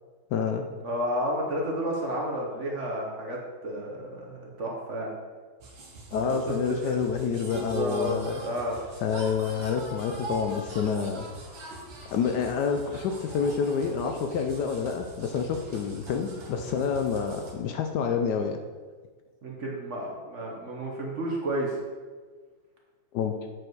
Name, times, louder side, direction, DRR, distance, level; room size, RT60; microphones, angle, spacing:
voice 1, 0.3-0.7 6.1-8.4 9.0-11.3 12.1-18.6 23.1-23.4, left 6 dB, 70° left, 5 dB, 1.1 m, -28 dB
voice 2, 0.8-5.1 6.2-6.9 7.5-8.8 19.4-21.8, right 1 dB, 45° right, -1 dB, 1.2 m, -31 dB
sound 1, 5.6-17.5, right 1 dB, 85° right, 2.0 m, -43 dB
7.8 x 5.1 x 4.6 m, 1.5 s
omnidirectional pair, 2.0 m